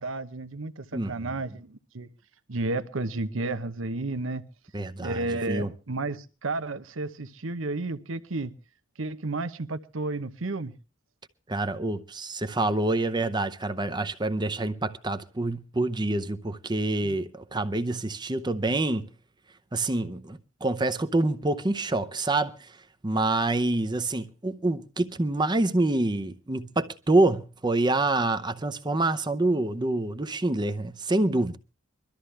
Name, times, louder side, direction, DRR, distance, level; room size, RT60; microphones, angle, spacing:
voice 1, 0.0-2.1 2.5-4.4 5.0-8.5 9.0-10.7, right 2 dB, 80° right, 0.9 m, -32 dB
voice 2, 0.9-1.3 4.7-5.2 5.5-5.7 11.5-19.1 19.7-22.7 23.0-31.6, right 2 dB, 20° right, 0.7 m, -26 dB
22.5 x 13.0 x 3.3 m
head